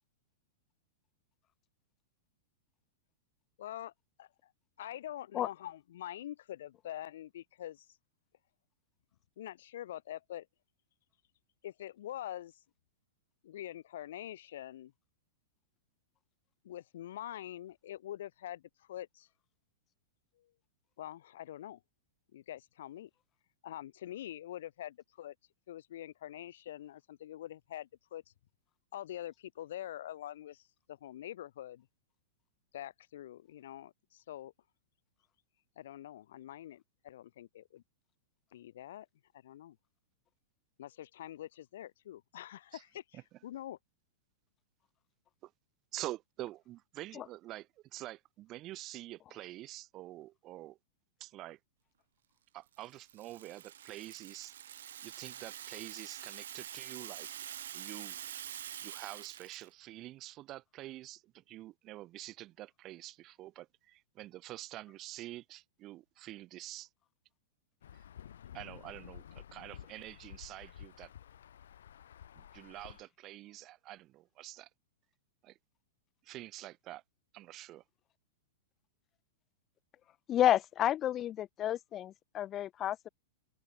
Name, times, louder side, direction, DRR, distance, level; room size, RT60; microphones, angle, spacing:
voice 1, 3.6-3.9 4.2-4.5 4.8-7.9 9.4-10.5 11.6-12.5 13.4-14.9 16.6-19.3 20.4-20.5 21.0-21.8 22.3-23.1 23.6-25.3 25.7-28.2 28.9-31.9 32.7-34.5 35.8-37.8 38.5-39.1 39.4-39.8 40.8-43.8, left 12 dB, 70° left, 2.5 m, -45 dB
voice 2, 45.9-50.8 51.2-51.6 52.5-54.5 55.0-57.3 57.7-58.2 58.8-66.9 68.5-71.1 72.3-74.7 75.4-75.5 76.2-77.0 77.3-77.8, right 16 dB, 30° right, 1.6 m, -47 dB
Rattle (instrument), 52.7-59.7, right 10 dB, 80° right, 1.2 m, -46 dB
Insect / Thunder / Rain, 67.8-73.0, left 9 dB, 85° left, 2.5 m, -52 dB
voice 3, 80.3-83.1, left 11 dB, 25° left, 2.0 m, -30 dB
open air
supercardioid pair, 150°, 0 cm